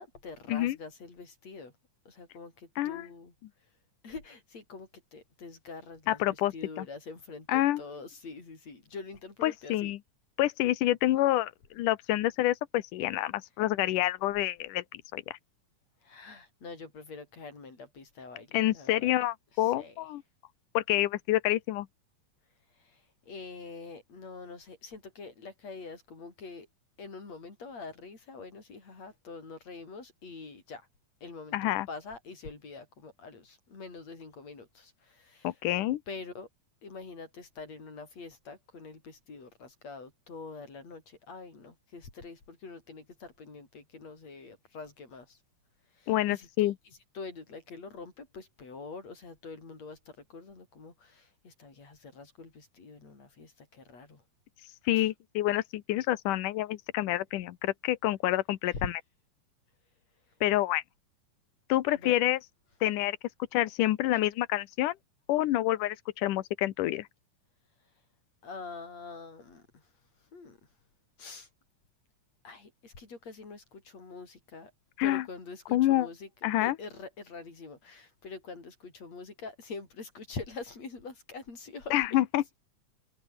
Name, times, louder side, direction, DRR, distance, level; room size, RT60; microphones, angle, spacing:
voice 1, 0.0-1.7 2.1-3.3 4.0-9.9 16.0-19.1 19.6-19.9 22.8-23.0 23.3-26.7 27.0-30.9 31.2-35.5 36.1-36.5 36.8-45.4 46.0-46.7 47.2-50.0 50.3-54.2 54.9-55.1 58.7-58.9 61.9-62.2 68.4-69.8 70.3-70.6 71.2-71.5 72.4-74.7 75.0-76.3 76.6-82.2, left 4 dB, 55° left, 7.0 m, -45 dB
voice 2, 2.8-3.1 6.1-6.9 7.5-7.8 9.4-10.0 10.4-15.4 18.5-20.2 20.7-21.9 31.5-31.9 35.4-36.0 46.1-46.8 54.9-59.0 60.4-60.8 61.7-62.4 62.8-63.2 63.5-65.0 65.3-67.1 75.0-75.2 75.7-76.1 76.4-76.8 81.9-82.4, left 15 dB, 80° left, 2.6 m, -28 dB
open air
omnidirectional pair, 3.6 m